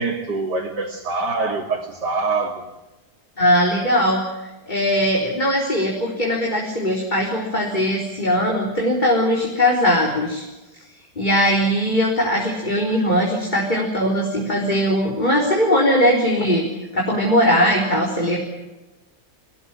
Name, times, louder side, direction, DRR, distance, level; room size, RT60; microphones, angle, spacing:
voice 1, 0.0-2.7, right 3 dB, 90° right, -2 dB, 3.4 m, -24 dB
voice 2, 3.4-4.2 4.7-10.4 11.2-16.6 16.9-18.4, equal, 25° left, -1 dB, 4.2 m, -20 dB
24.5 x 18.0 x 9.1 m, 1.1 s
omnidirectional pair, 1.8 m